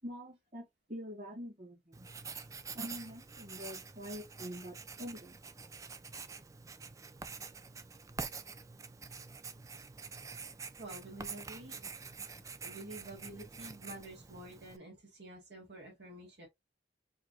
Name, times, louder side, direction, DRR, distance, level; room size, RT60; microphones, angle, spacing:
voice 1, 0.0-2.1 2.7-5.4, equal, 45° right, 2.2 m, -45 dB
Writing, 1.9-14.8, right 5 dB, 20° right, 0.4 m, -47 dB
voice 2, 10.8-16.5, right 1 dB, 70° right, 1.7 m, -49 dB
4.7 x 2.5 x 3.0 m
head